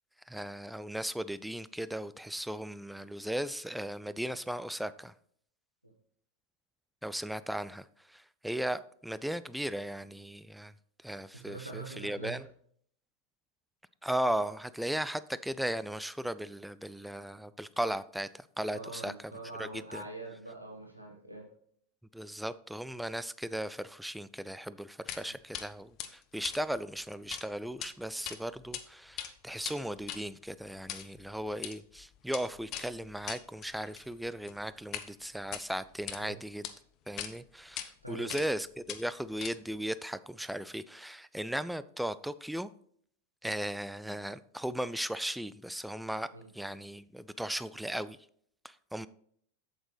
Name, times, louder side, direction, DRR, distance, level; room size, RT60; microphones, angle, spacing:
voice 1, 0.3-5.1 7.0-10.7 11.0-12.5 14.0-19.3 19.6-20.0 22.1-36.7 37.1-42.7 43.4-46.3 46.5-48.2 48.6-49.1, right 1 dB, ahead, 0.4 m, -37 dB
voice 2, 11.3-12.4 18.7-21.4 25.2-25.3 36.2-36.3 38.0-38.4 46.3-46.5, right 2 dB, 90° right, 1.2 m, -44 dB
sound 1, 25.1-25.2 25.5-25.7 26.0-27.4 27.7-27.9 28.2-28.8 29.1-35.1 35.4-36.2 36.6-36.7 37.2-37.3 37.8-37.9 38.3-38.6 38.9-39.8, left 11 dB, 35° left, 0.8 m, -41 dB
8.0 x 7.8 x 3.2 m
figure-of-eight pair, 90°, 0 cm